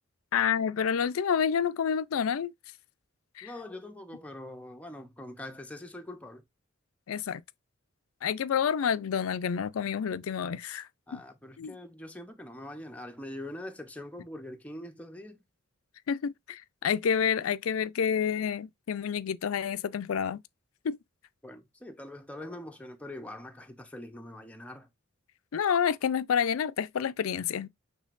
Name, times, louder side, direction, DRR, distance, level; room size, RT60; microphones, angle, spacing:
voice 1, 0.3-2.5 3.4-3.5 7.1-7.4 8.2-11.2 11.6-11.8 16.1-20.4 20.8-21.0 25.5-27.7, left 7 dB, 85° left, 0.4 m, -29 dB
voice 2, 3.4-6.4 11.1-15.4 21.4-24.9, left 1 dB, 5° left, 0.7 m, -43 dB
6.4 x 3.3 x 2.4 m
head